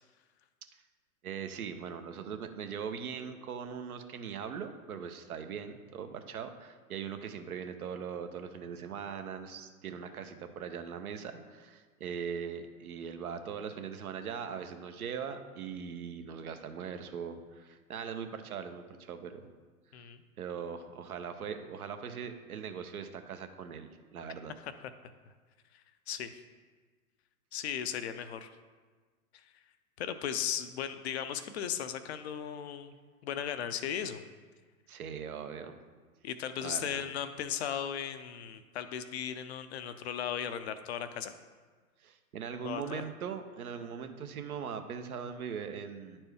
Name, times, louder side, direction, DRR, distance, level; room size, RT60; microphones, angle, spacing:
voice 1, 1.2-19.5 20.4-24.5 34.9-35.8 36.6-37.0 42.0-46.2, right 7 dB, 70° right, 7 dB, 0.8 m, -40 dB
voice 2, 25.7-26.3 27.5-28.5 30.0-33.0 33.2-34.2 36.2-41.3 42.6-43.0, left 9 dB, 45° left, 10 dB, 0.5 m, -36 dB
9.8 x 4.4 x 3.4 m, 1.4 s
figure-of-eight pair, 110°, 46 cm